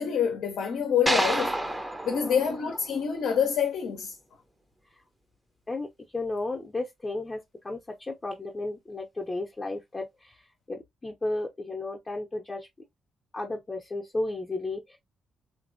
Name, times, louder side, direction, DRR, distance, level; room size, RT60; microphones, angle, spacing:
voice 1, 0.0-1.6 2.0-4.2, left 7 dB, 70° left, 0.6 m, -26 dB
sound 1, 1.1-3.4, right 1 dB, 15° right, 0.6 m, -29 dB
voice 2, 2.1-2.4 5.7-12.7 13.3-15.0, left 2 dB, 30° left, 0.7 m, -34 dB
2.9 x 2.5 x 2.6 m
hypercardioid pair, 45°, 0 cm